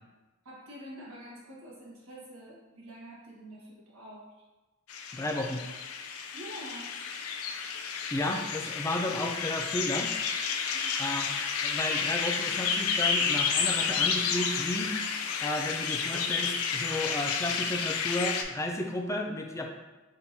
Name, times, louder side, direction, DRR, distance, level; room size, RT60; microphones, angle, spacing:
voice 1, 0.4-4.3 6.3-6.9 10.7-11.1, equal, 90° right, -6 dB, 1.4 m, -47 dB
sound 1, 4.9-18.4, left 6 dB, 85° left, 0.4 m, -31 dB
voice 2, 5.1-5.6 8.1-10.1 11.0-11.3 11.6-14.9 15.4-19.7, left 1 dB, 15° left, 2 dB, 0.3 m, -33 dB
4.4 x 3.7 x 2.7 m, 1.1 s
head